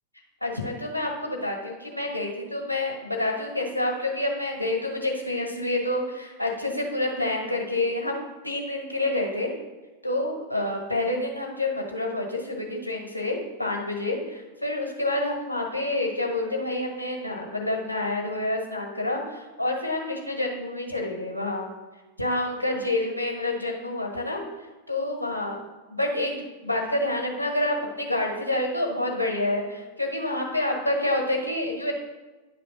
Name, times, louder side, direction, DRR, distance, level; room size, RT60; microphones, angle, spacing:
voice 1, 0.4-9.5 10.0-21.7 22.2-25.6 25.9-31.9, left 2 dB, 85° left, 1 dB, 1.3 m, -28 dB
9.6 x 3.4 x 6.2 m, 1.2 s
figure-of-eight pair, 90°, 0 cm